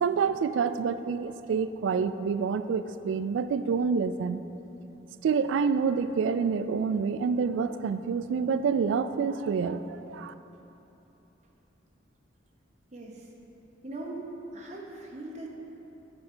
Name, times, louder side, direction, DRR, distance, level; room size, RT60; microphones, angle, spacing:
voice 1, 0.0-4.4 5.2-10.3, right 5 dB, 80° right, 12 dB, 0.3 m, -27 dB
voice 2, 12.9-13.3 13.8-14.2 14.5-15.5, right 2 dB, 40° right, -2 dB, 0.9 m, -40 dB
7.8 x 4.4 x 5.4 m, 3.0 s
head